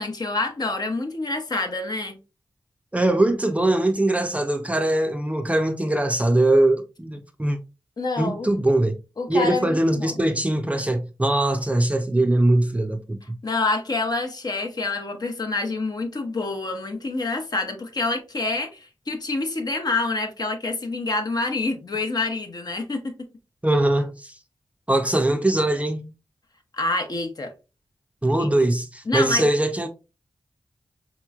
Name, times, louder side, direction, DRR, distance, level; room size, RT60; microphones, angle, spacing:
voice 1, 0.0-2.2 8.0-8.5 9.2-10.2 13.4-23.1 26.7-27.5 28.4-28.5 29.1-29.5, left 3 dB, 50° left, 0.8 m, -27 dB
voice 2, 2.9-7.6 8.2-8.9 9.3-13.2 23.6-24.3 24.9-26.1 28.2-29.9, right 1 dB, 15° right, 0.5 m, -21 dB
4.0 x 3.0 x 2.3 m
cardioid pair, 60°, 9 cm